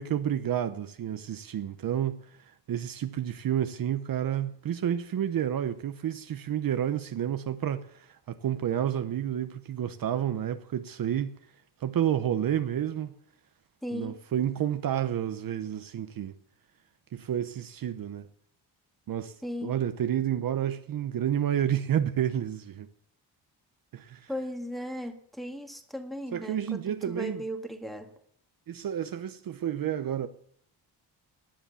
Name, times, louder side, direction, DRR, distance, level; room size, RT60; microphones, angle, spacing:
voice 1, 0.0-11.4 11.8-13.1 13.9-16.3 17.1-18.3 19.1-19.3 19.6-22.9 23.9-24.3 26.3-27.4 28.7-30.3, right 10 dB, 55° right, 0.9 m, -30 dB
voice 2, 13.8-14.2 19.4-19.7 24.3-28.1, equal, ahead, 1.8 m, -37 dB
18.0 x 10.0 x 6.9 m
wide cardioid pair, 150°, 41 cm